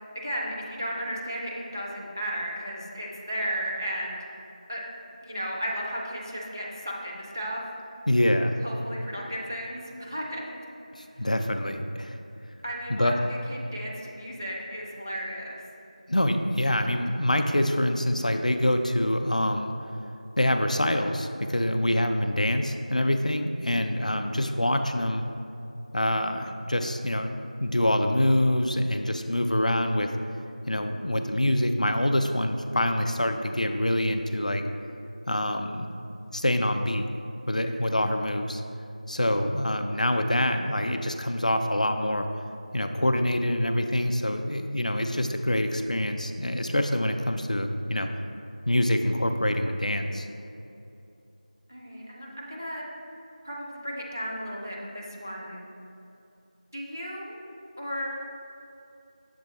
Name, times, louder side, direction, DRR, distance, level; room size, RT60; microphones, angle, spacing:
voice 1, 0.1-4.2 4.7-4.8 5.2-7.6 8.6-10.4 11.1-11.2 12.6-15.6 23.7-23.9 46.7-46.9 51.7-52.8 53.4-55.6 56.7-57.3 57.8-58.0, equal, 25° right, -3 dB, 0.5 m, -34 dB
voice 2, 8.1-8.6 10.9-12.2 12.9-13.2 16.1-19.7 20.4-25.2 25.9-30.1 30.7-34.6 35.3-35.9 36.3-37.1 37.5-38.6 39.1-42.3 42.7-48.1 48.7-50.3, left 1 dB, 60° left, 6 dB, 0.4 m, -25 dB
6.7 x 3.5 x 4.0 m, 2.8 s
figure-of-eight pair, 180°, 4 cm